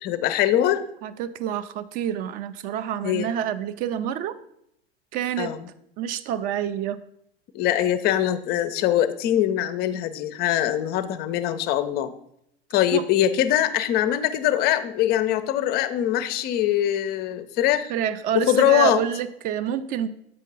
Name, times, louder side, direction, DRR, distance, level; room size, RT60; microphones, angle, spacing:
voice 1, 0.0-0.8 3.0-3.3 5.4-5.7 7.5-12.1 12.7-17.9 18.3-19.0, left 11 dB, 30° left, 12 dB, 0.5 m, -22 dB
voice 2, 1.0-4.4 5.1-5.5 6.0-7.0 12.9-13.1 17.9-20.1, right 9 dB, 30° right, 14 dB, 0.3 m, -27 dB
7.6 x 5.3 x 3.7 m, 0.75 s
figure-of-eight pair, 85°, 32 cm